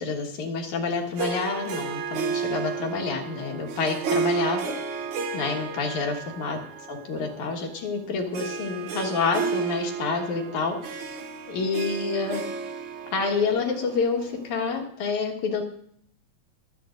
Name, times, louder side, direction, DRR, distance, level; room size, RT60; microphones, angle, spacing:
voice 1, 0.0-5.1 5.3-6.6 6.9-11.2 11.5-12.4 13.1-15.6, left 4 dB, 80° left, 2 dB, 2.9 m, -28 dB
Harp, 1.2-14.8, right 5 dB, 75° right, 1.2 m, -32 dB
25.0 x 8.5 x 2.6 m, 0.66 s
omnidirectional pair, 3.3 m